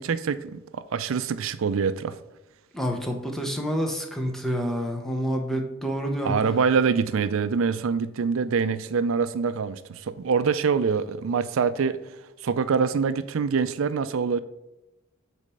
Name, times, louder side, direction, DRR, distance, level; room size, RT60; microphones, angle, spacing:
voice 1, 0.0-2.1 6.2-12.0 12.4-14.4, right 5 dB, 75° right, 0.4 m, -25 dB
voice 2, 2.7-6.3, equal, ahead, 0.8 m, -28 dB
5.1 x 4.3 x 5.4 m
head